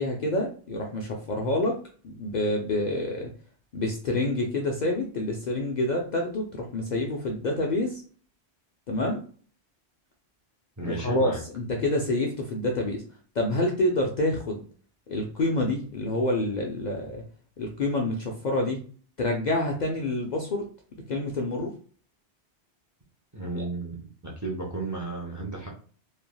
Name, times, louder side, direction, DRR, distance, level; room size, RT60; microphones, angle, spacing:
voice 1, 0.0-1.8 2.0-3.3 3.7-8.0 8.9-9.2 10.8-13.0 13.4-14.6 15.1-17.2 17.6-18.8 19.2-20.7 21.1-21.7 23.5-23.6, left 1 dB, 55° left, 1 dB, 0.5 m, -27 dB
voice 2, 10.8-11.4 23.3-25.7, right 3 dB, 25° right, -3 dB, 0.5 m, -34 dB
3.3 x 2.4 x 2.2 m, 0.43 s
omnidirectional pair, 1.1 m